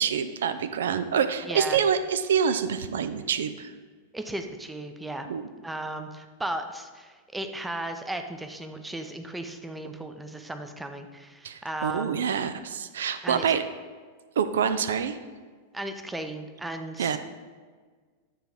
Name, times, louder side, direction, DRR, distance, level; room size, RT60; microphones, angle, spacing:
voice 1, 0.0-3.7 5.3-5.4 11.4-13.6 14.4-15.2 17.0-17.2, right 7 dB, 65° right, 10 dB, 0.3 m, -26 dB
voice 2, 1.5-1.8 4.1-5.3 5.6-12.2 13.2-13.5 15.7-17.2, right 1 dB, 5° right, 6 dB, 0.6 m, -35 dB
9.2 x 3.8 x 4.6 m, 1.5 s
figure-of-eight pair, 90°, 0 cm